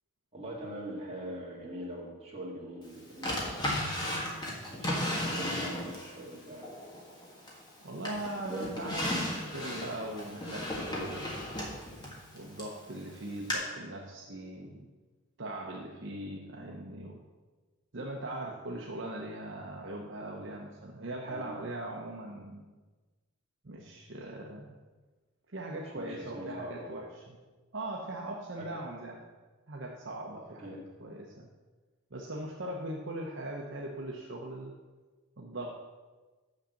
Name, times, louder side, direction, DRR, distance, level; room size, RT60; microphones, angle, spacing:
voice 1, 0.3-3.7 4.7-6.7 21.3-21.5 25.9-26.9 28.6-28.7 30.6-30.8, equal, 30° right, -4 dB, 2.2 m, -42 dB
Drawer open or close, 3.2-6.1 6.6-7.7 8.0-12.8 13.5-13.6, left 1 dB, 20° left, 1.6 m, -34 dB
voice 2, 7.8-9.1 9.5-11.4 12.3-14.9 15.4-17.2 17.9-22.7 23.6-24.7 25.5-27.4 27.7-29.2 29.7-31.5 32.1-34.7 35.4-35.8, right 1 dB, 60° right, -1 dB, 0.9 m, -40 dB
6.5 x 6.4 x 7.1 m, 1.3 s
head